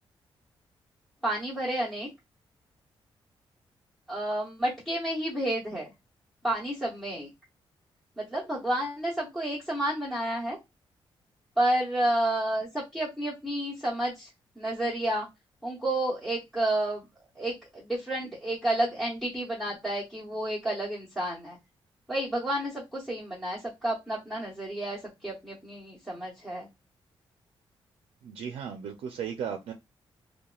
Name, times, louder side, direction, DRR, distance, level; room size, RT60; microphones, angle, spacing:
voice 1, 1.2-2.1 4.1-5.9 6.4-7.3 8.2-10.6 11.6-15.3 15.6-17.1 17.3-21.6 22.1-26.7, right 1 dB, ahead, 0.8 m, -30 dB
voice 2, 28.2-29.7, right 7 dB, 75° right, 0.4 m, -35 dB
2.9 x 2.2 x 2.3 m
wide cardioid pair, 170°, 10 cm